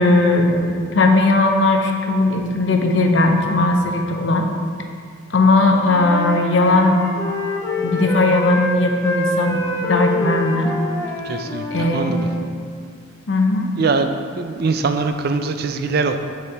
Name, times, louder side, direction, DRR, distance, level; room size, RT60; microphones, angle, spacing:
voice 1, 0.0-4.5 5.3-7.0 7.8-10.7 11.7-12.2 13.3-13.7, left 2 dB, 60° left, 3 dB, 0.6 m, -17 dB
Wind instrument woodwind instrument, 5.6-12.4, left 2 dB, 15° left, 0.6 m, -26 dB
voice 2, 11.2-12.3 13.8-16.2, right 4 dB, 50° right, 7 dB, 0.3 m, -22 dB
7.5 x 4.1 x 4.0 m, 2.2 s
head